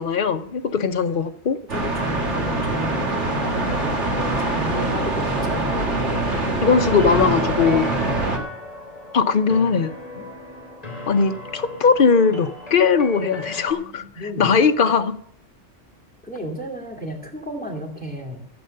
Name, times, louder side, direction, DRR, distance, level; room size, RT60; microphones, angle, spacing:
voice 1, 0.0-1.6 6.6-7.9 9.1-9.9 11.1-14.0 14.4-15.2, left 5 dB, 50° left, 0.9 m, -19 dB
voice 2, 1.7-6.2 6.7-6.8 7.9-8.3 10.1-10.3 13.4-14.6 16.2-18.4, equal, 5° left, 2.6 m, -33 dB
sound 1, 1.7-8.4, right 2 dB, 70° right, 2.3 m, -24 dB
sound 2, 3.3-13.7, left 1 dB, 30° left, 2.6 m, -37 dB
14.5 x 8.0 x 6.6 m
omnidirectional pair, 1.2 m